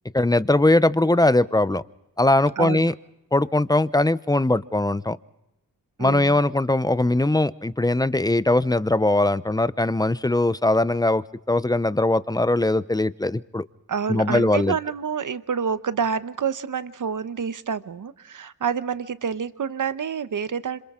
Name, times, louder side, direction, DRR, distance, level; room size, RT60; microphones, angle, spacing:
voice 1, 0.1-1.8 2.2-2.9 3.3-5.2 6.0-13.6 14.1-14.7, left 2 dB, 10° left, 16 dB, 0.6 m, -20 dB
voice 2, 2.6-2.9 6.0-6.4 13.9-20.8, right 6 dB, 55° right, 13 dB, 1.0 m, -28 dB
27.0 x 26.5 x 3.8 m, 0.91 s
cardioid pair, 70°, 36 cm